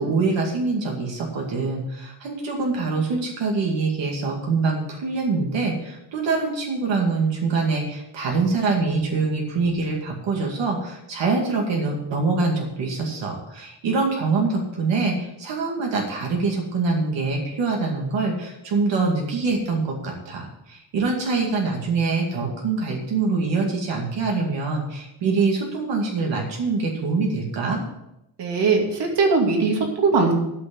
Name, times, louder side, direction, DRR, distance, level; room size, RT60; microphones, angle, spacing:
voice 1, 0.0-27.8, right 4 dB, 85° right, 0 dB, 2.4 m, -24 dB
voice 2, 28.4-30.3, right 4 dB, 70° right, 1 dB, 2.5 m, -20 dB
13.0 x 6.1 x 7.1 m, 0.87 s
wide cardioid pair, 165°, 43 cm